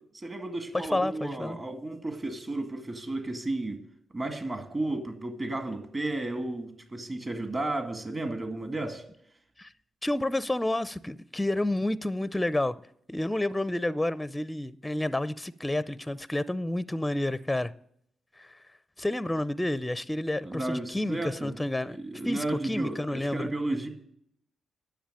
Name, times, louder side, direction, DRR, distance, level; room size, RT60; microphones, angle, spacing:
voice 1, 0.1-3.8 4.1-9.0 20.4-21.6 21.9-23.9, right 2 dB, 30° right, 2.0 m, -33 dB
voice 2, 0.7-1.6 9.6-9.7 10.0-12.8 13.1-17.7 18.4-18.5 19.0-22.0 22.2-23.5, left 1 dB, 10° left, 0.5 m, -30 dB
10.0 x 7.1 x 9.0 m
supercardioid pair, 65°, 0 cm